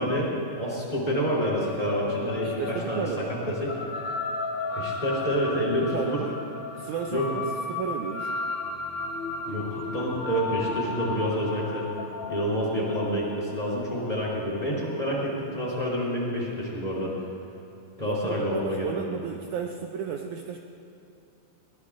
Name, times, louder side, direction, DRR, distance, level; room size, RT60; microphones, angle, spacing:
voice 1, 0.0-3.1 3.5-3.7 4.7-6.2 7.1-7.3 9.5-11.9 12.3-17.1 18.0-19.1, equal, 10° left, -5 dB, 3.7 m, -28 dB
sound 1, 1.3-16.0, left 4 dB, 55° left, 1.5 m, -35 dB
voice 2, 2.4-3.3 5.9-6.4 6.7-7.4 7.7-8.4 18.0-20.6, right 7 dB, 75° right, 3 dB, 1.9 m, -33 dB
21.5 x 20.0 x 2.6 m, 2.7 s
omnidirectional pair, 3.8 m